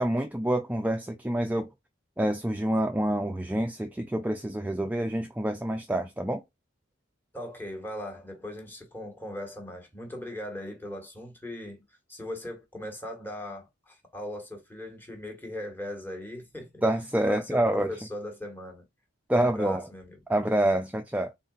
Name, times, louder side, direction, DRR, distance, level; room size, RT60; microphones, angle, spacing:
voice 1, 0.0-1.7 2.2-6.4 16.8-17.9 19.3-19.8 20.3-21.3, right 1 dB, 10° right, 0.4 m, -27 dB
voice 2, 7.3-16.8 17.2-18.9 19.4-20.2, left 1 dB, 10° left, 1.4 m, -39 dB
4.1 x 3.9 x 2.4 m
head